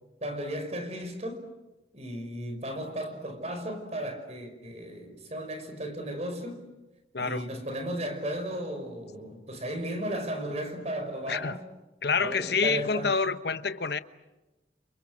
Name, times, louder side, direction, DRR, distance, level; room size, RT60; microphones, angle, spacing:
voice 1, 0.2-1.5 1.9-6.6 7.2-11.6 12.2-13.2, equal, 35° right, 5.5 m, -35 dB
voice 2, 7.1-7.4 11.3-11.6 12.0-14.0, left 5 dB, 60° left, 1.1 m, -27 dB
29.5 x 28.5 x 6.3 m
head